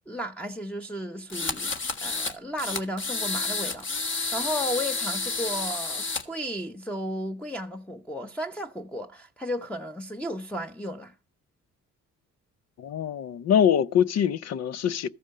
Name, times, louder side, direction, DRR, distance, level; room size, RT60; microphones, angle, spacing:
voice 1, 0.0-1.8 2.0-11.1, equal, 5° left, 0.8 m, -34 dB
sound 1, 1.3-2.3 2.6-6.2, left 3 dB, 40° left, 1.7 m, -30 dB
voice 2, 12.8-15.1, left 9 dB, 60° left, 0.6 m, -24 dB
14.0 x 5.0 x 6.6 m
cardioid pair, 90°, 30 cm